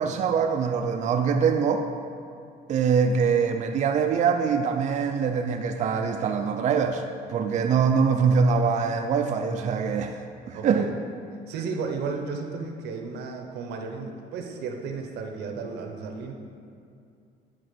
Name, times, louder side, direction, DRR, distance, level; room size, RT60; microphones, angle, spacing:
voice 1, 0.0-1.9 2.7-7.0 7.3-10.2 10.5-10.8, right 6 dB, 45° right, 4 dB, 0.4 m, -23 dB
voice 2, 10.5-10.9 11.5-16.3, right 4 dB, 80° right, 4 dB, 0.9 m, -33 dB
9.8 x 3.6 x 5.1 m, 2.5 s
cardioid pair, 110°, 17 cm